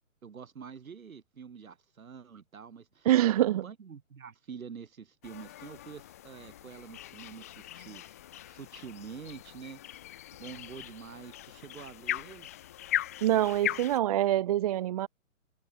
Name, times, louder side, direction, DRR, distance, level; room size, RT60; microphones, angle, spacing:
voice 1, 0.2-8.2 8.4-9.8 10.3-12.5, right 6 dB, 75° right, 7.9 m, -46 dB
voice 2, 3.0-3.6 13.2-15.1, right 13 dB, 25° right, 1.1 m, -25 dB
sound 1, 5.2-14.0, left 13 dB, 10° left, 0.6 m, -39 dB
hypercardioid pair, 165°, 41 cm